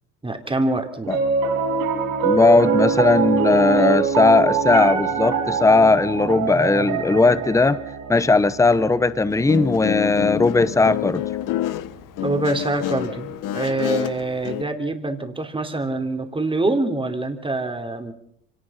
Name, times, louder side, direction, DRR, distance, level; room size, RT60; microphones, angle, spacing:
voice 1, 0.2-1.2 12.2-18.1, right 2 dB, 15° right, 5 dB, 3.3 m, -25 dB
Piano, 1.0-11.4, right 5 dB, 70° right, 7.7 m, -24 dB
voice 2, 2.2-7.8 8.1-11.2, left 3 dB, 10° left, 15 dB, 1.0 m, -18 dB
Guitar, 9.3-14.6, left 13 dB, 55° left, 1.3 m, -27 dB
25.0 x 19.0 x 5.8 m, 0.70 s
supercardioid pair, 95°, 37 cm